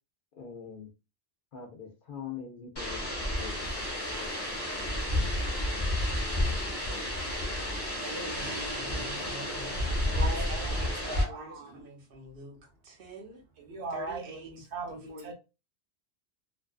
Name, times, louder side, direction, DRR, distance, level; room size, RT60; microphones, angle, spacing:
voice 1, 0.3-0.9 1.5-3.1 3.4-4.3, left 7 dB, 60° left, 0.6 m, -43 dB
sound 1, 2.8-11.2, left 1 dB, 25° left, 0.8 m, -31 dB
sound 2, 5.6-5.8 6.1-6.3 8.4-8.6 8.9-9.0, right 2 dB, 35° right, 0.5 m, -38 dB
voice 2, 8.0-9.9 10.1-12.6 12.8-13.4 13.9-14.5 14.9-15.3, right 2 dB, 60° right, 0.8 m, -43 dB
voice 3, 10.0-11.9 13.6-15.3, right 4 dB, 80° right, 1.0 m, -40 dB
2.5 x 2.3 x 2.3 m
omnidirectional pair, 1.1 m